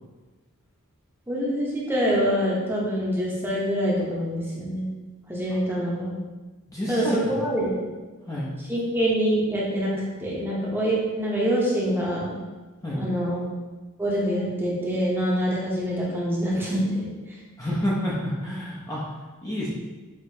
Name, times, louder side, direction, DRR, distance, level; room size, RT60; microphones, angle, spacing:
voice 1, 1.3-4.9 5.3-6.1 6.9-7.7 8.7-12.4 12.9-13.4 14.0-17.1, equal, 10° right, -5 dB, 0.8 m, -25 dB
voice 2, 6.7-7.4 8.3-8.5 12.8-13.0 17.6-19.0 19.4-19.7, left 1 dB, 15° left, -6 dB, 0.6 m, -28 dB
6.3 x 2.9 x 2.7 m, 1.3 s
head